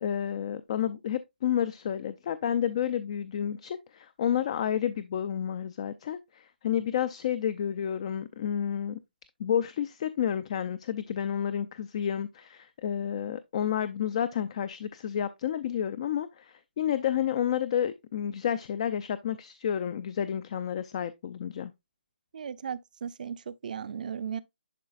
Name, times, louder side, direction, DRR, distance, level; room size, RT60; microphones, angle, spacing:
voice 1, 0.0-9.0 9.4-21.7, left 9 dB, 40° left, 0.4 m, -30 dB
voice 2, 22.3-24.4, right 7 dB, 50° right, 0.6 m, -36 dB
11.0 x 3.9 x 2.4 m
hypercardioid pair, 150°, 5 cm